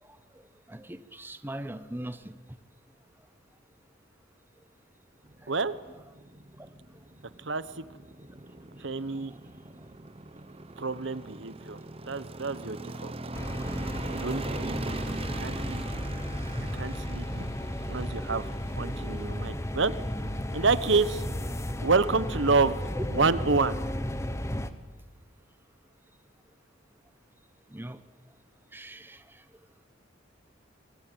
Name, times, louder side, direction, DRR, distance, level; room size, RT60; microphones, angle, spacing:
voice 1, 0.0-2.6 5.4-5.5 6.6-7.0 8.8-8.9 9.1-9.4 9.7-9.9 13.1-13.2 14.1-14.2 23.0-23.1 27.7-28.0 28.7-29.4, right 1 dB, 10° right, 11 dB, 1.0 m, -42 dB
sound 1, 5.2-24.6, right 2 dB, 30° right, 1.1 m, -42 dB
voice 2, 7.4-7.8 8.8-9.3 10.8-11.8 12.1-13.1 14.1-14.8 15.4-15.8 16.7-17.5 17.9-18.5 18.8-19.9 20.5-21.2 21.8-22.8 23.1-23.8, right 4 dB, 65° right, 15 dB, 1.0 m, -28 dB
sound 2, 13.3-24.7, left 1 dB, 15° left, 1.2 m, -34 dB
25.0 x 23.5 x 9.1 m, 1.4 s
head